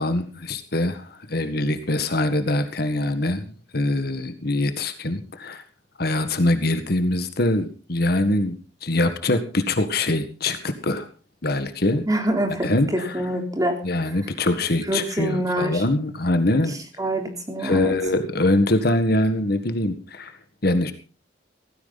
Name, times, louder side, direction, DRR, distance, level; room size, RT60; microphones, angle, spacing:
voice 1, 0.0-5.6 6.0-8.6 8.8-11.1 11.4-12.0 12.6-13.2 13.8-16.8 17.6-20.3 20.6-20.9, left 1 dB, 55° left, 9 dB, 1.7 m, -23 dB
voice 2, 12.1-13.8 14.9-15.8 16.7-17.9, right 1 dB, 20° right, 3 dB, 3.6 m, -25 dB
16.5 x 15.5 x 4.1 m, 0.36 s
head